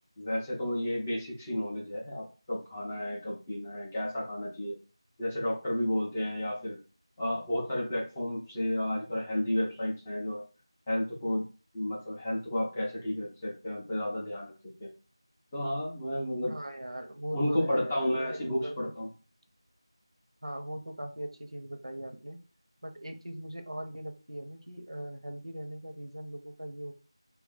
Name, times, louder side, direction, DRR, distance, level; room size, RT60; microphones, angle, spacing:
voice 1, 0.2-4.7 5.2-6.8 7.2-10.4 10.9-11.4 11.7-14.5 14.8-14.9 15.5-16.5 17.3-19.1, left 1 dB, 10° left, -6 dB, 0.3 m, -32 dB
voice 2, 16.4-18.9 20.4-22.4 22.8-26.9, right 1 dB, 80° right, 5 dB, 0.7 m, -40 dB
2.3 x 2.3 x 3.8 m, 0.34 s
figure-of-eight pair, 170°, 3 cm